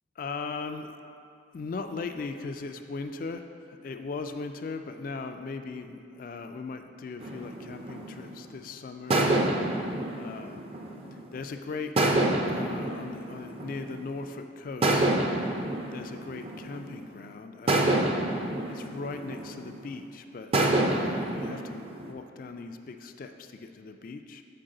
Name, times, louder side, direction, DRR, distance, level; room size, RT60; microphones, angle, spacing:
voice 1, 0.2-0.9 1.5-9.9 10.2-10.7 11.1-11.9 12.5-15.1 15.9-17.9 18.7-20.5 20.9-24.4, left 4 dB, 45° left, 7 dB, 0.3 m, -39 dB
sound 1, 7.2-8.5 9.1-11.4 12.0-14.1 14.8-17.1 17.7-19.9 20.5-22.1, right 2 dB, 30° right, 0.5 m, -28 dB
7.6 x 4.6 x 3.8 m, 2.5 s
head